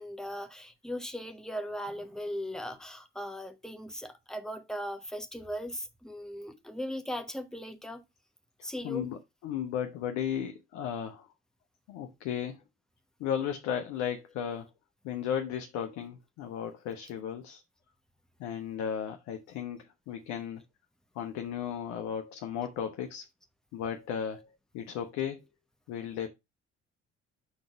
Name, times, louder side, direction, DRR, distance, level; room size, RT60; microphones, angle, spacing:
voice 1, 0.0-8.0 8.6-9.1, equal, ahead, 1.0 m, -38 dB
voice 2, 8.6-11.3 11.9-12.6 13.2-14.7 15.0-17.6 18.4-20.6 21.1-23.3 23.7-24.5 24.7-25.4 25.9-26.3, left 8 dB, 55° left, 0.8 m, -35 dB
6.3 x 3.9 x 4.9 m
figure-of-eight pair, 50°, 33 cm